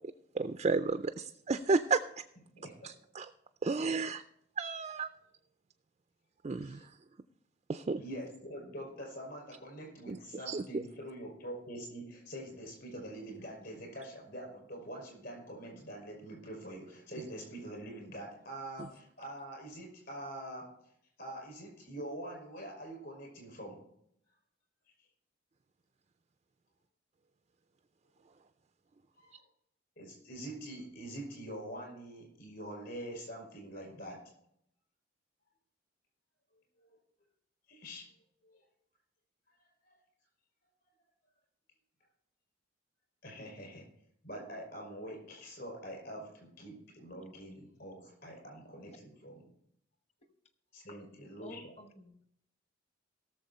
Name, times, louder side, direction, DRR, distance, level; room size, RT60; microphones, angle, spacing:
voice 1, 0.0-2.0 2.8-3.3 3.6-4.2 4.6-5.1 6.4-7.0 7.7-8.0 10.1-10.2 10.5-10.8 18.8-18.9, right 4 dB, 30° right, 10 dB, 0.3 m, -32 dB
voice 2, 2.6-2.9 6.6-6.8 8.0-20.7 21.2-23.8 29.2-29.4 30.0-34.2 36.8-37.0 37.7-38.1 38.4-38.6 39.8-40.0 43.2-43.9 44.2-49.4 50.7-51.6, right 1 dB, 50° left, 0 dB, 5.5 m, -45 dB
voice 3, 51.4-52.3, left 2 dB, 30° left, 7 dB, 1.0 m, -51 dB
17.5 x 6.9 x 4.2 m, 0.73 s
head